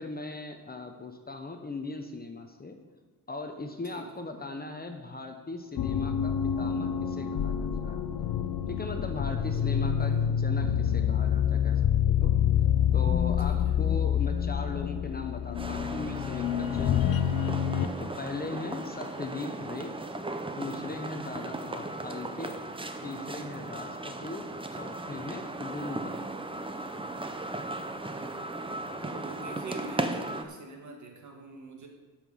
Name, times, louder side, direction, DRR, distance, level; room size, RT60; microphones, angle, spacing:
voice 1, 0.0-2.8 3.3-8.2 8.7-11.8 12.1-12.3 12.9-20.0 20.5-22.6 23.0-26.1, left 3 dB, 25° left, 5 dB, 0.8 m, -39 dB
sound 1, 5.8-18.0, left 9 dB, 75° left, 0.7 m, -27 dB
sound 2, 15.5-30.4, right 2 dB, 15° right, 0.6 m, -37 dB
voice 2, 27.8-28.4 29.0-31.9, right 3 dB, 55° right, 2 dB, 1.9 m, -45 dB
11.0 x 5.9 x 7.0 m, 1.4 s
wide cardioid pair, 160°, 36 cm